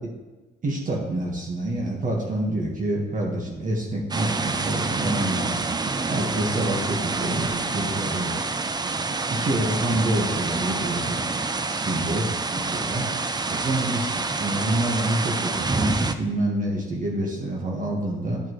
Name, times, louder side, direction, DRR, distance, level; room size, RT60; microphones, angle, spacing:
voice 1, 0.6-5.6 6.1-8.4 9.3-11.2 11.8-13.0 13.5-18.4, right 1 dB, 40° right, -1 dB, 1.6 m, -27 dB
sound 1, 4.1-16.2, right 3 dB, 20° right, 0.5 m, -27 dB
11.5 x 5.8 x 3.2 m, 1.2 s
cardioid pair, 90°, 20 cm